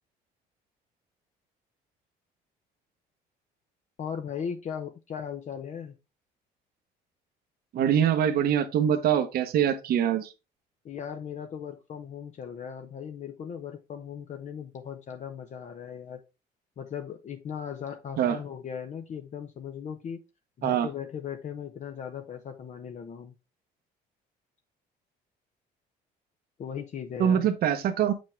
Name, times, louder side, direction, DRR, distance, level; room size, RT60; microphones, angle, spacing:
voice 1, 4.0-5.9 10.8-16.2 16.8-20.2 20.6-23.3 26.6-27.5, left 8 dB, 45° left, 0.8 m, -38 dB
voice 2, 7.7-10.3 18.2-18.4 20.6-20.9 27.2-28.1, right 9 dB, 65° right, 1.0 m, -24 dB
7.3 x 5.3 x 3.4 m
cardioid pair, 110°, 17 cm